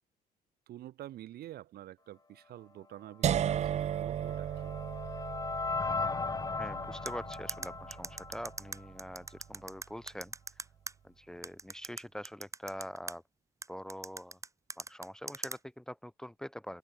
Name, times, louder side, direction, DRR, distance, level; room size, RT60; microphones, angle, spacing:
voice 1, 0.7-4.7 5.0-5.3, right 13 dB, 70° right, 3.0 m, -48 dB
sound 1, 3.2-9.2, right 10 dB, 40° right, 0.5 m, -36 dB
sound 2, 3.8-9.0, left 4 dB, 20° left, 1.9 m, -37 dB
voice 2, 6.6-10.6 11.0-13.2 13.7-14.4 14.8-16.8, equal, 5° left, 1.1 m, -44 dB
sound 3, 7.1-10.9 11.4-13.1 13.6-15.6, right 3 dB, 20° right, 3.1 m, -40 dB
open air
cardioid pair, 110°, 17 cm